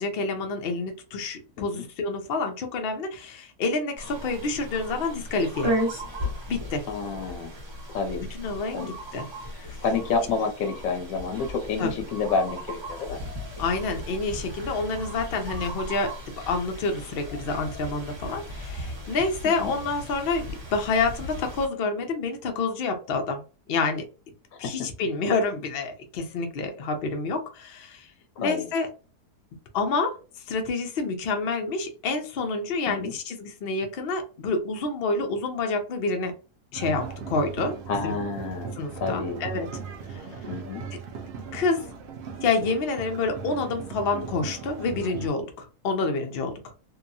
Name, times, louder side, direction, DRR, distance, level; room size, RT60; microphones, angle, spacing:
voice 1, 0.0-5.7 6.5-6.8 8.2-9.3 9.5-9.8 11.8-11.9 13.6-16.1 16.5-23.4 23.7-24.1 24.6-28.1 28.4-28.9 29.7-30.2 30.5-36.3 36.7-38.1 38.8-39.7 40.1-40.2 40.9-41.0 41.5-41.8 42.4-46.5, left 3 dB, 80° left, 4 dB, 0.5 m, -28 dB
sound 1, 4.0-21.7, equal, 25° right, 0.6 m, -36 dB
voice 2, 6.9-7.5 7.9-8.2 8.7-8.9 9.8-13.2 19.4-19.7 24.5-24.9 28.4-28.7 32.9-33.1 37.9-39.4 40.5-40.8, left 4 dB, 65° left, 4 dB, 0.9 m, -29 dB
sound 2, 36.7-45.3, right 6 dB, 80° right, 0.6 m, -38 dB
2.8 x 2.3 x 2.6 m, 0.35 s
omnidirectional pair, 1.7 m